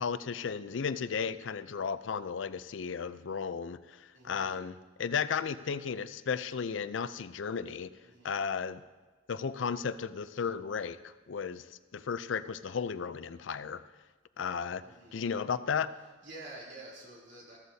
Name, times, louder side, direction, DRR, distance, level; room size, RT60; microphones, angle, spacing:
voice 1, 0.0-7.9 8.2-8.8 9.3-11.7 11.9-13.8 14.4-14.8 15.1-15.9, left 6 dB, 85° left, 14 dB, 0.5 m, -34 dB
voice 2, 4.1-4.6 8.0-8.4 14.8-15.3 16.2-17.6, right 2 dB, 65° right, -3 dB, 3.3 m, -49 dB
14.5 x 14.0 x 2.8 m, 1.3 s
head